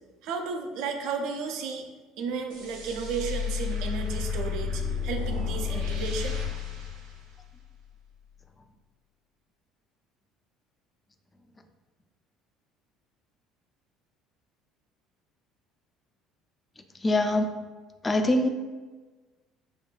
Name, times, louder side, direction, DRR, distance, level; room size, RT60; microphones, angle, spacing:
voice 1, 0.2-1.9 2.2-6.4, right 5 dB, 60° right, 4 dB, 0.4 m, -33 dB
sound 1, 2.5-7.8, left 6 dB, 75° right, 0.9 m, -32 dB
voice 2, 17.0-17.5 18.0-18.5, left 1 dB, 25° left, 6 dB, 0.4 m, -23 dB
6.1 x 2.3 x 2.2 m, 1.3 s
figure-of-eight pair, 60°, 0 cm